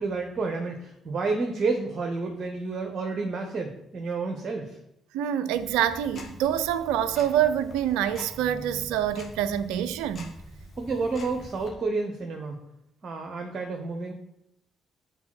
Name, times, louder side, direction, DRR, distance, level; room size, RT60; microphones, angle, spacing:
voice 1, 0.0-4.8 10.8-12.6 13.0-14.1, right 3 dB, 40° right, 1.0 m, -30 dB
voice 2, 5.1-10.3, right 10 dB, 65° right, 0.4 m, -26 dB
Tick-tock, 5.5-11.7, left 1 dB, 40° left, 1.7 m, -44 dB
6.0 x 4.1 x 6.0 m
figure-of-eight pair, 40°, 0 cm